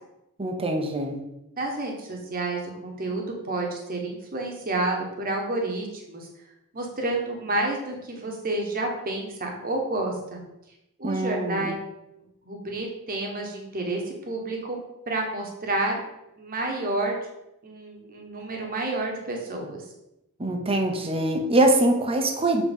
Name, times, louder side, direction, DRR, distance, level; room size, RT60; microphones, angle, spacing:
voice 1, 0.4-1.2 11.0-11.7 20.4-22.6, right 1 dB, 25° right, 5 dB, 0.8 m, -23 dB
voice 2, 1.6-6.3 6.7-10.4 11.0-11.7 12.4-16.0 16.4-17.2 17.6-19.8, right 2 dB, 40° right, 1 dB, 1.2 m, -30 dB
7.2 x 3.0 x 5.3 m, 0.89 s
head